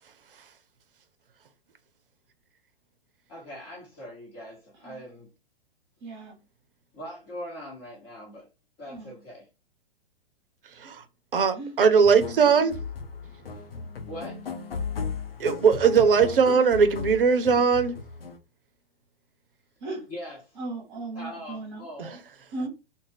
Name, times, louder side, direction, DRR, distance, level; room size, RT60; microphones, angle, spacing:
voice 1, 3.3-5.3 6.9-8.5 8.8-9.5 14.1-14.5 20.1-20.6 21.1-22.2, equal, 30° left, 1.0 m, -41 dB
voice 2, 6.0-6.4 8.9-9.2 11.5-11.8 19.8-20.1 20.6-21.9 22.5-22.7, right 2 dB, 35° right, 0.8 m, -36 dB
voice 3, 11.3-12.8 15.4-17.9, right 6 dB, 70° right, 0.6 m, -20 dB
sound 1, 12.0-18.4, left 5 dB, 75° left, 0.6 m, -36 dB
2.4 x 2.1 x 3.3 m
figure-of-eight pair, 110°, 29 cm